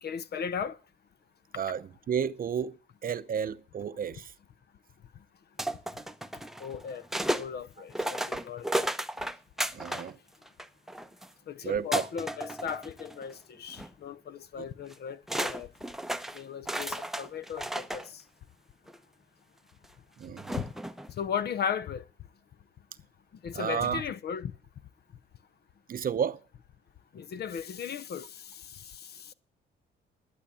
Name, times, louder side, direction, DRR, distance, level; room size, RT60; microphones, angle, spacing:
voice 1, 0.0-0.8 6.6-7.1 7.3-8.7 9.9-10.0 11.5-15.7 16.3-18.2 20.6-20.7 21.2-22.0 23.4-24.5 27.1-29.3, left 7 dB, 55° left, 0.7 m, -36 dB
voice 2, 1.6-4.3 9.7-10.2 11.6-12.0 20.2-20.6 23.5-24.0 25.9-26.4, right 7 dB, 45° right, 0.7 m, -32 dB
sound 1, 5.6-7.5 7.9-10.1 10.4-11.3 11.9-13.3 13.7-13.9 14.9-15.0 15.3-18.1 18.9-19.0 20.4-21.1, right 1 dB, ahead, 0.7 m, -33 dB
11.5 x 8.6 x 7.0 m
cardioid pair, 90°, 20 cm